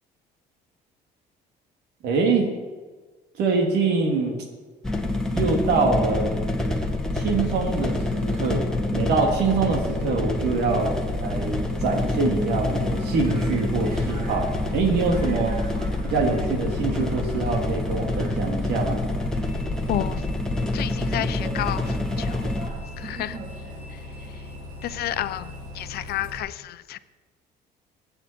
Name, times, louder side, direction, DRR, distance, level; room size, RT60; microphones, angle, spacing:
voice 1, 2.0-2.5 3.4-4.3 5.3-6.4 7.1-10.9 11.2-15.6 16.0-19.0, right 4 dB, 80° right, 1 dB, 3.0 m, -24 dB
sound 1, 4.8-22.7, left 2 dB, 5° left, 1.9 m, -27 dB
Bus, 10.8-26.4, left 1 dB, 50° right, 3.7 m, -38 dB
voice 2, 19.9-20.2 20.7-22.5 23.0-23.4 24.8-27.0, left 13 dB, 70° left, 13 dB, 0.8 m, -30 dB
23.5 x 9.0 x 4.5 m, 1.4 s
cardioid pair, 110°, 17 cm